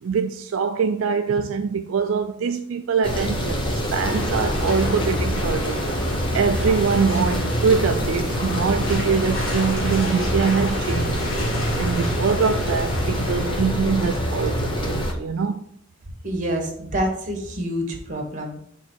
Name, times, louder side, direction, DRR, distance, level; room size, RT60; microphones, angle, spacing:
voice 1, 0.0-5.8 6.3-11.2 11.8-15.6, right 5 dB, 75° right, 0.4 m, -23 dB
sound 1, 3.0-15.1, equal, 25° left, 1.0 m, -25 dB
sound 2, 4.0-13.6, left 1 dB, 85° left, 1.8 m, -31 dB
voice 2, 16.2-18.6, equal, 40° right, 1.4 m, -27 dB
6.4 x 3.6 x 4.5 m
head